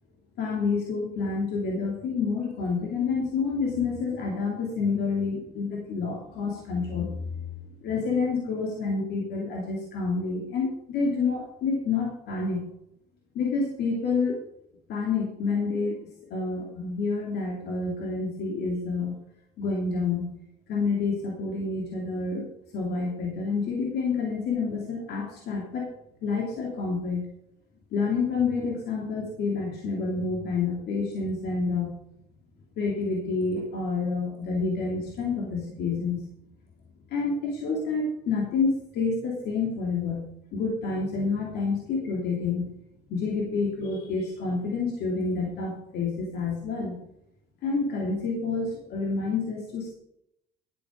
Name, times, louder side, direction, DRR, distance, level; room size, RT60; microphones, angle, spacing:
voice 1, 0.4-7.5 7.8-12.7 13.3-14.4 14.9-16.0 16.3-19.1 19.6-20.3 20.7-22.4 22.7-25.9 26.2-27.2 27.9-32.0 32.8-36.3 37.1-40.2 40.5-42.7 43.1-47.0 47.6-49.9, left 4 dB, 70° left, -1 dB, 2.8 m, -28 dB
11.5 x 8.4 x 5.0 m, 0.77 s
cardioid pair, 110°, 17 cm